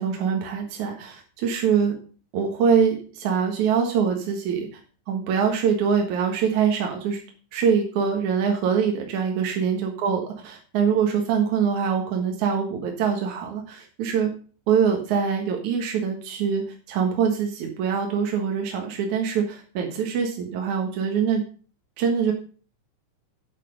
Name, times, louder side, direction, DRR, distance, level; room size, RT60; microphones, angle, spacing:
voice 1, 0.0-2.0 2.3-4.7 5.1-7.2 7.5-14.3 14.7-21.4 22.0-22.3, right 7 dB, 65° right, 2 dB, 2.0 m, -24 dB
9.5 x 7.1 x 5.2 m, 0.39 s
omnidirectional pair, 5.6 m